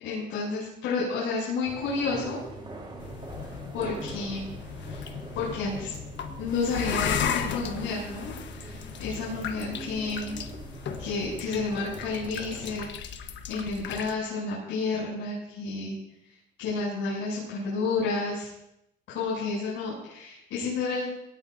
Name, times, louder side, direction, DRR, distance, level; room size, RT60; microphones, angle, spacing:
voice 1, 0.0-2.4 3.7-4.5 4.9-5.1 5.3-6.0 6.4-10.4 11.0-16.0 16.6-18.5 19.1-21.1, left 4 dB, 85° left, -7 dB, 7.8 m, -31 dB
sound 1, 1.7-12.8, right 2 dB, 25° right, 3.8 m, -43 dB
sound 2, 3.0-14.1, left 8 dB, 65° left, 1.4 m, -36 dB
21.5 x 18.5 x 2.8 m, 0.85 s
cardioid pair, 125°, 20 cm